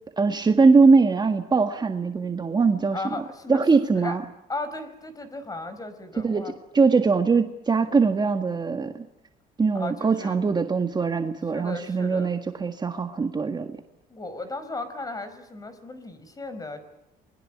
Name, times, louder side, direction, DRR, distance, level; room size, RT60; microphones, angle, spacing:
voice 1, 0.2-3.0 3.5-4.2 6.2-9.1 9.6-13.8, right 4 dB, 25° right, 6 dB, 1.8 m, -21 dB
voice 2, 2.9-3.6 3.9-4.2 4.5-6.5 9.7-10.4 11.5-12.3 14.1-16.8, left 2 dB, 20° left, 12 dB, 4.9 m, -35 dB
28.0 x 21.5 x 8.6 m, 0.90 s
cardioid pair, 110°, 17 cm